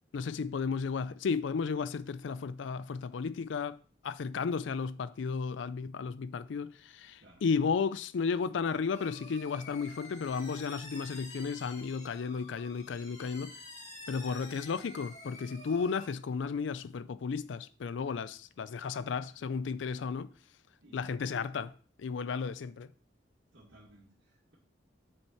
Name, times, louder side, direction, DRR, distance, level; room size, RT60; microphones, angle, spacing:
voice 1, 0.1-13.6 14.1-20.3 20.9-22.9, left 5 dB, 75° left, 0.4 m, -34 dB
sound 1, 8.9-16.0, left 2 dB, 40° left, 3.0 m, -49 dB
voice 2, 23.5-24.6, right 1 dB, 85° right, 2.2 m, -59 dB
7.0 x 6.5 x 4.5 m
head